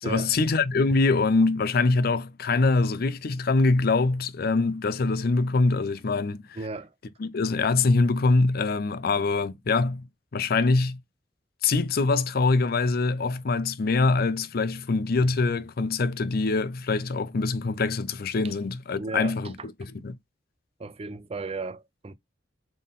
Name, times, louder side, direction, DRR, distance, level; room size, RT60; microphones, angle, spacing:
voice 1, 0.0-6.6 7.2-10.1 10.3-11.0 11.6-20.2, left 3 dB, 55° left, 0.5 m, -24 dB
voice 2, 6.6-6.9 19.0-19.4 20.8-22.1, right 3 dB, 35° right, 0.5 m, -34 dB
3.9 x 3.6 x 3.6 m
head